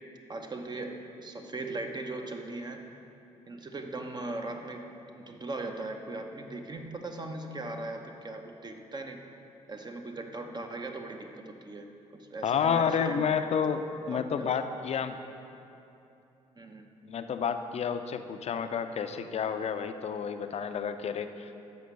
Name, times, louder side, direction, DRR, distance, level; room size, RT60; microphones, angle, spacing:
voice 1, 0.3-2.8 3.5-4.8 5.1-9.2 9.7-13.6 14.1-14.5 14.7-14.8 16.6-16.9, right 2 dB, 30° right, 4 dB, 0.9 m, -39 dB
voice 2, 12.4-13.8 14.1-15.2 17.1-21.5, left 7 dB, 50° left, 9 dB, 0.5 m, -30 dB
6.4 x 5.1 x 6.8 m, 2.8 s
supercardioid pair, 55°, 14 cm